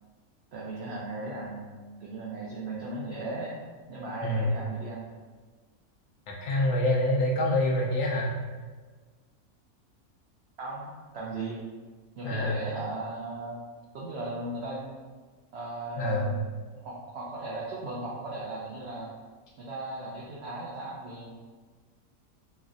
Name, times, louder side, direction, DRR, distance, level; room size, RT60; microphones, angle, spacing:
voice 1, 0.5-3.5 3.9-5.1 10.6-11.6 12.2-13.7 13.9-14.9 15.5-16.5 16.7-19.1 19.6-21.3, right 2 dB, 65° right, -5 dB, 0.7 m, -37 dB
voice 2, 6.3-8.3 12.2-12.6 16.0-16.4, left 1 dB, 65° left, -4 dB, 0.8 m, -26 dB
3.1 x 3.0 x 2.5 m, 1.4 s
omnidirectional pair, 1.5 m